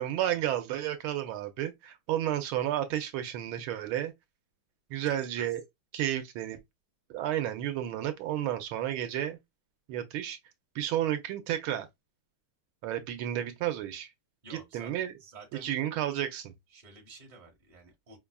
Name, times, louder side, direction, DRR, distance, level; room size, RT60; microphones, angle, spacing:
voice 1, 0.0-4.1 4.9-5.6 5.9-6.6 7.1-9.4 9.9-10.4 10.7-11.9 12.8-14.1 14.5-15.2 15.5-16.5, right 12 dB, 80° right, 1.4 m, -32 dB
voice 2, 5.0-5.5 14.4-14.9 15.2-15.7 16.7-18.2, right 3 dB, 25° right, 1.1 m, -50 dB
5.3 x 2.3 x 2.2 m
omnidirectional pair, 2.3 m